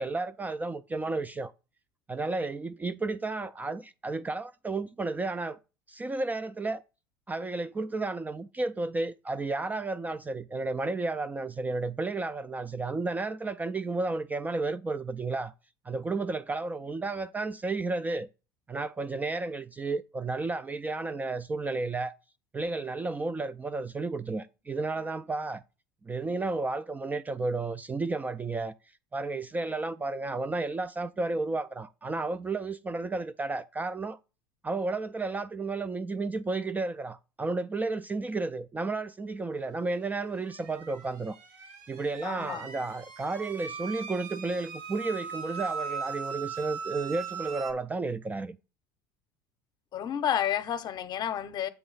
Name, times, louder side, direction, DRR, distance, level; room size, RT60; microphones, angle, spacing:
voice 1, 0.0-1.5 2.1-5.6 5.9-6.8 7.3-15.5 15.9-18.3 18.7-22.1 22.5-25.6 26.1-28.7 29.1-34.2 34.6-41.4 41.9-48.6, right 3 dB, 15° right, 0.3 m, -32 dB
sound 1, 40.1-47.7, right 6 dB, 65° right, 1.4 m, -39 dB
voice 2, 42.2-42.6 49.9-51.7, left 9 dB, 40° left, 0.8 m, -30 dB
8.0 x 3.1 x 5.4 m
hypercardioid pair, 80°, 11 cm